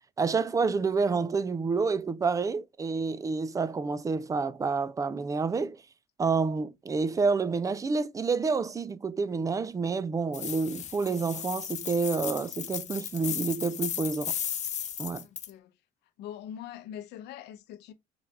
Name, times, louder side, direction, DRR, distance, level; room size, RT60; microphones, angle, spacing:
voice 1, 0.2-5.8 6.2-14.4 15.0-15.3, right 4 dB, 20° right, 0.4 m, -28 dB
sound 1, 10.3-15.5, left 9 dB, 45° left, 0.6 m, -35 dB
voice 2, 15.2-15.7 16.2-17.9, left 10 dB, 80° left, 0.7 m, -43 dB
3.8 x 3.2 x 3.3 m
cardioid pair, 110°, 17 cm